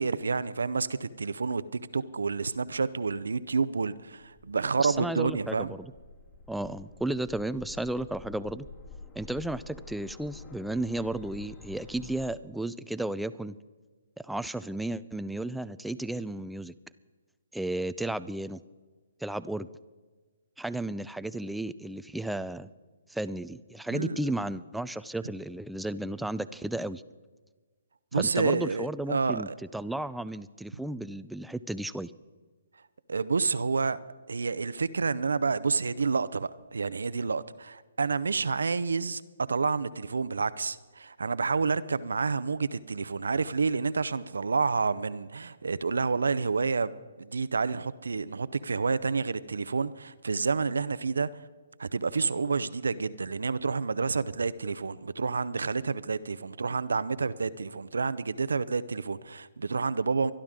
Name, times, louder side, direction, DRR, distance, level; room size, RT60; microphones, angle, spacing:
voice 1, 0.0-5.7 23.9-24.2 28.1-29.6 33.1-34.0 34.3-39.2 39.5-51.3 51.8-60.3, right 4 dB, 75° right, 0.6 m, -29 dB
sound 1, 4.3-12.3, left 3 dB, 30° left, 3.1 m, -49 dB
voice 2, 4.8-5.9 6.5-8.7 9.2-13.5 14.2-16.7 17.5-18.6 19.2-19.7 20.6-22.7 23.1-27.0 28.1-32.1, right 1 dB, ahead, 0.4 m, -33 dB
24.0 x 11.5 x 3.7 m
figure-of-eight pair, 135°, 0 cm